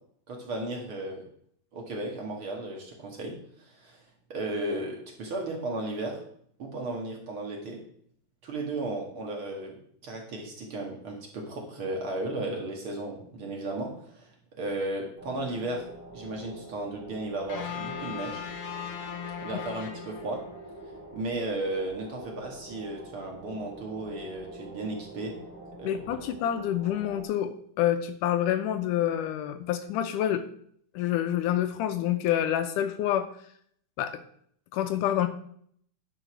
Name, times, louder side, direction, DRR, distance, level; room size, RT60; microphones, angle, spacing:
voice 1, 0.3-1.2 1.7-4.0 4.3-6.2 6.6-7.8 8.4-9.8 10.0-14.3 14.6-15.9 16.1-18.4 19.4-20.4 21.1-25.3 25.8-26.2, right 2 dB, 45° right, 0 dB, 2.1 m, -34 dB
sound 1, 15.2-27.2, right 1 dB, 15° right, 3.2 m, -46 dB
sound 2, 17.5-20.7, left 8 dB, 60° left, 1.9 m, -38 dB
voice 2, 25.8-30.4 31.0-33.3 34.0-34.2 34.7-35.3, left 11 dB, 80° left, 9 dB, 2.1 m, -27 dB
10.0 x 5.3 x 6.1 m, 0.64 s
omnidirectional pair, 3.8 m